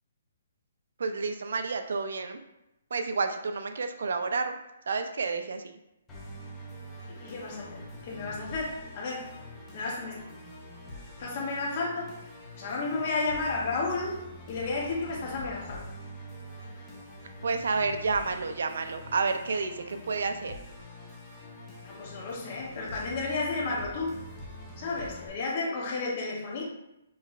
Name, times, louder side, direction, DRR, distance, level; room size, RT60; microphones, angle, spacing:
voice 1, 1.0-2.4 2.9-4.6 4.9-5.8 17.4-20.6, right 4 dB, 65° right, 7 dB, 0.5 m, -30 dB
Musical instrument, 6.1-25.3, left 1 dB, 10° left, 0.6 m, -45 dB
voice 2, 7.2-9.3 9.7-10.2 11.2-12.1 12.6-14.2 14.5-15.9 21.8-24.1 24.8-26.6, left 3 dB, 30° left, -3 dB, 0.9 m, -32 dB
5.6 x 3.1 x 2.4 m, 0.88 s
hypercardioid pair, 175°, 0 cm